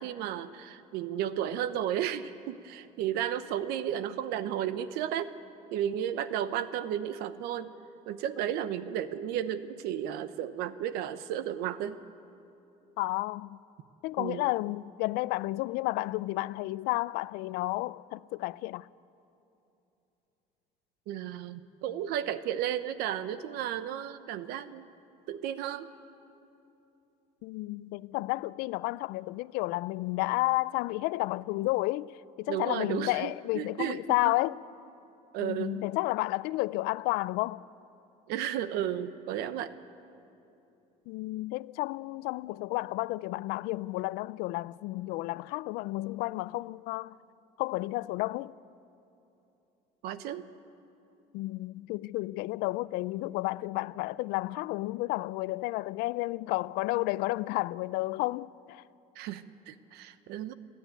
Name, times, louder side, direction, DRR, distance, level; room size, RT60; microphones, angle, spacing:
voice 1, 0.0-5.3 5.7-7.7 8.1-12.0 14.2-14.5 21.1-24.9 25.3-25.9 32.5-34.3 35.3-35.8 38.3-39.7 50.0-50.5 59.1-60.5, right 10 dB, 80° right, 0.9 m, -33 dB
voice 2, 13.0-13.6 14.0-18.9 27.4-34.6 35.4-37.6 41.1-47.2 47.6-48.5 51.3-58.8, left 20 dB, 85° left, 0.4 m, -31 dB
28.0 x 10.5 x 9.1 m
cardioid pair, 165°, 16 cm